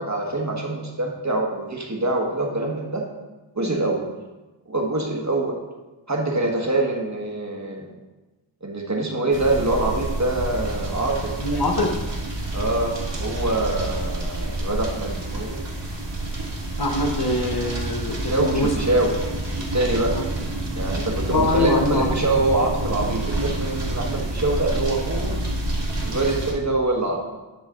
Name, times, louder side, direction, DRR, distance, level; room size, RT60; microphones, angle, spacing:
voice 1, 0.0-3.1 3.5-4.0 4.7-5.6 6.1-8.0 8.6-11.4 12.5-15.6 18.2-19.1 19.7-20.2 20.7-25.4 26.0-27.2, right 2 dB, 35° right, 0 dB, 1.5 m, -24 dB
sound 1, 9.3-26.5, right 1 dB, 65° right, 1.9 m, -28 dB
voice 2, 11.4-12.0 16.8-18.7 20.2-20.3 21.3-22.2, left 2 dB, 50° left, 3 dB, 1.1 m, -23 dB
10.5 x 6.1 x 3.8 m, 1.1 s
wide cardioid pair, 80°, 46 cm